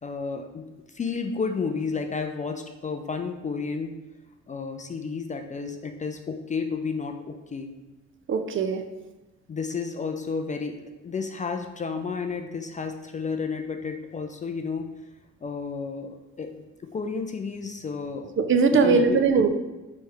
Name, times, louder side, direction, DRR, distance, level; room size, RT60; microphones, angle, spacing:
voice 1, 0.0-3.9 4.5-7.7 9.5-14.9 15.4-16.7 16.9-18.3 18.7-19.2, left 5 dB, 25° left, 5 dB, 0.4 m, -32 dB
voice 2, 8.3-8.8 18.4-19.5, right 5 dB, 45° right, 7 dB, 0.4 m, -20 dB
3.4 x 3.2 x 4.5 m, 1.1 s
cardioid pair, 90°, 30 cm